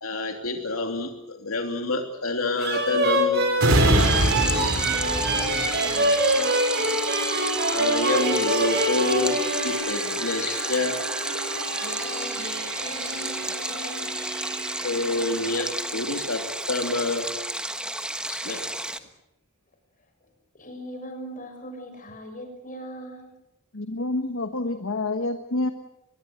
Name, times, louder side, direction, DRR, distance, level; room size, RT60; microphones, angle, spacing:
voice 1, 0.0-3.5 7.7-11.0 14.8-17.3 18.3-18.6, left 2 dB, 85° left, 4 dB, 3.1 m, -28 dB
sound 1, 2.6-9.8, right 1 dB, 50° right, 6.8 m, -25 dB
sound 2, 3.6-16.9 17.3-17.5, right 1 dB, 75° right, 4.9 m, -29 dB
Stream, 4.0-19.0, right 1 dB, 5° right, 1.3 m, -32 dB
voice 2, 4.1-6.9 11.7-14.1 18.1-18.7 20.2-20.3 20.5-23.3, left 1 dB, 40° left, 5 dB, 6.6 m, -39 dB
voice 3, 23.7-25.7, left 2 dB, 65° left, 8 dB, 1.4 m, -28 dB
23.5 x 22.0 x 7.9 m, 0.91 s
head